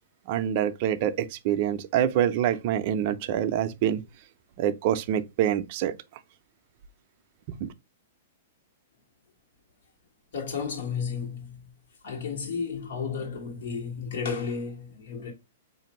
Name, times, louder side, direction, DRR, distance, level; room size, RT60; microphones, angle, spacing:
voice 1, 0.3-4.0 4.6-5.9 7.5-7.7, right 10 dB, 35° right, 0.4 m, -26 dB
voice 2, 10.3-11.6 12.0-15.3, left 5 dB, 70° left, 1.3 m, -33 dB
5.2 x 2.5 x 2.9 m
hypercardioid pair, 170°, 0 cm